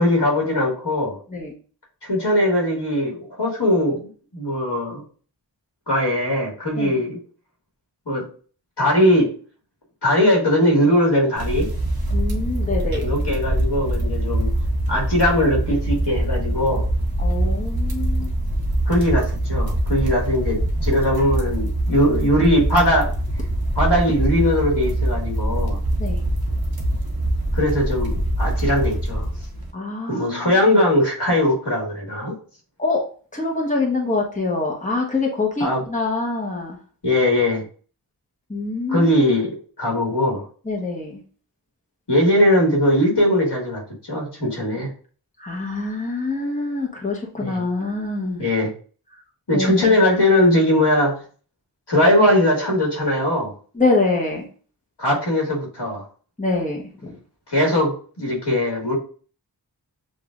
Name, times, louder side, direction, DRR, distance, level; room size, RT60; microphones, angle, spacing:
voice 1, 0.0-1.2 2.0-5.0 5.9-7.2 8.1-8.3 8.8-9.3 10.0-11.7 12.9-14.5 14.9-16.9 18.9-23.1 23.8-25.8 27.5-29.3 30.1-32.3 35.6-35.8 37.0-37.6 38.9-40.4 42.1-43.8 44.1-44.9 47.4-47.6 48.4-48.7 49.5-51.2 51.9-53.5 55.0-56.0 57.5-59.0, left 1 dB, 70° left, -1 dB, 1.9 m, -20 dB
sound 1, 11.4-29.7, right 1 dB, 60° right, 1.0 m, -23 dB
voice 2, 12.1-13.1 17.2-18.3 26.0-26.2 29.7-30.8 32.8-33.0 33.3-36.8 38.5-39.1 40.6-41.2 45.4-48.4 49.5-49.9 53.7-54.4 56.4-57.2, left 3 dB, 20° left, -2 dB, 1.2 m, -25 dB
6.9 x 2.7 x 2.5 m, 0.40 s
wide cardioid pair, 45°, 42 cm